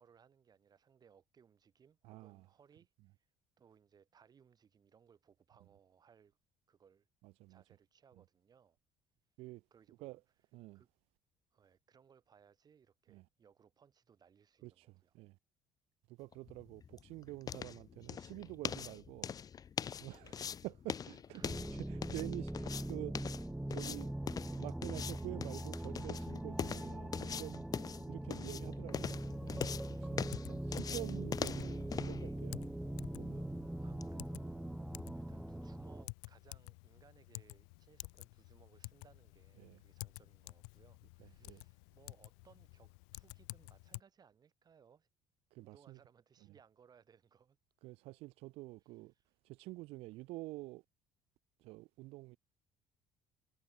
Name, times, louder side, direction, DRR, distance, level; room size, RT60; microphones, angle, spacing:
voice 1, 0.0-3.3 3.6-6.4 6.7-7.1 7.5-8.8 9.7-10.2 10.7-10.9 11.5-15.2 21.3-21.7 29.8-30.1 33.8-34.8 35.1-45.1 45.6-47.6 48.8-49.3, right 7 dB, 40° right, 5.2 m, -66 dB
voice 2, 2.0-2.4 7.2-7.6 9.4-9.6 10.0-10.2 10.5-10.8 13.1-13.2 14.6-15.3 16.2-19.3 20.0-24.1 24.6-27.6 28.1-32.7 33.1-33.5 39.6-39.8 41.4-41.6 45.5-46.0 47.8-49.1 49.4-50.8 51.6-52.4, right 20 dB, 75° right, 1.0 m, -48 dB
sound 1, 16.3-34.1, left 7 dB, 40° left, 0.8 m, -43 dB
sound 2, 21.4-36.0, right 1 dB, 5° right, 0.8 m, -42 dB
Typing, 28.9-44.0, left 40 dB or more, 90° left, 1.0 m, -52 dB
supercardioid pair, 85°, 10 cm